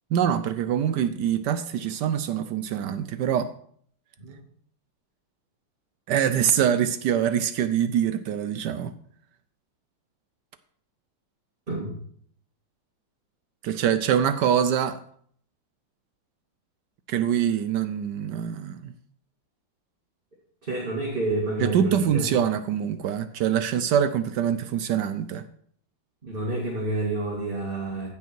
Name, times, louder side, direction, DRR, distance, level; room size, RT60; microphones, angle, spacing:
voice 1, 0.1-3.5 6.1-8.9 13.6-15.0 17.1-18.9 21.6-25.4, right 9 dB, 75° right, 12 dB, 1.1 m, -24 dB
voice 2, 20.6-22.3 26.2-28.1, right 2 dB, 30° right, -3 dB, 2.0 m, -29 dB
15.5 x 5.5 x 4.5 m, 0.62 s
omnidirectional pair, 2.1 m